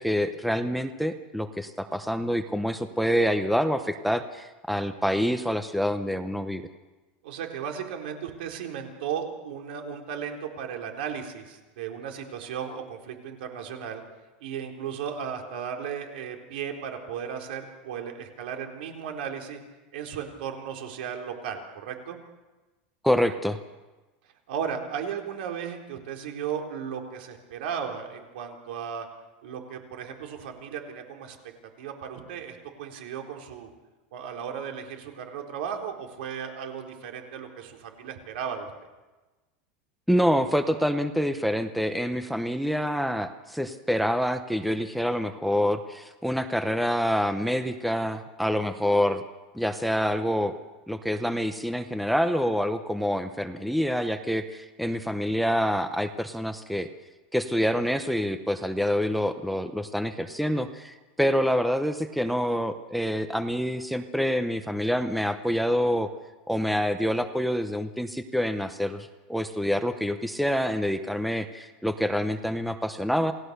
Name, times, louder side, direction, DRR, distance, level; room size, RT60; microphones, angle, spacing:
voice 1, 0.0-6.6 23.0-23.6 40.1-49.2 49.5-50.5 50.9-56.9 57.3-66.1 66.5-73.3, equal, ahead, 8 dB, 0.8 m, -26 dB
voice 2, 7.2-14.0 14.4-19.6 19.9-22.2 24.5-29.1 29.4-31.4 31.8-33.7 34.1-38.7, right 7 dB, 75° right, 3 dB, 4.0 m, -35 dB
28.5 x 18.0 x 6.8 m, 1.2 s
supercardioid pair, 165°, 5 cm